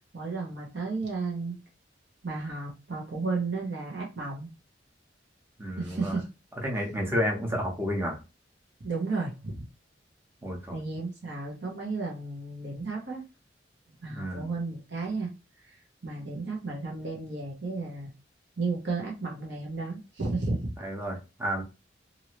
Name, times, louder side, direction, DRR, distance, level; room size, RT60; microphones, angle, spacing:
voice 1, 0.1-1.6 2.2-4.5 5.8-6.2 8.8-9.6 10.7-13.2 13.9-15.3 15.6-15.8 16.0-18.1 18.6-20.7, right 3 dB, 65° right, -2 dB, 1.1 m, -33 dB
voice 2, 5.6-6.2 6.6-8.2 10.4-10.8 14.1-14.5 20.8-21.6, equal, 15° right, 0 dB, 0.9 m, -31 dB
3.0 x 2.7 x 2.9 m, 0.29 s
head